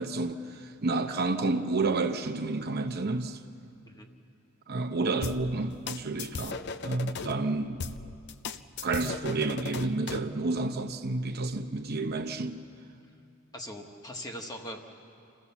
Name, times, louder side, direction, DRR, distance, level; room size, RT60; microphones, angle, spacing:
voice 1, 0.0-3.4 4.7-7.9 8.8-12.6, right 3 dB, 50° right, 0.8 m, -30 dB
sound 1, 5.2-7.3 7.8-10.3, left 4 dB, 55° left, 0.6 m, -37 dB
voice 2, 13.5-14.8, equal, 20° left, 1.4 m, -40 dB
27.0 x 15.0 x 7.2 m
head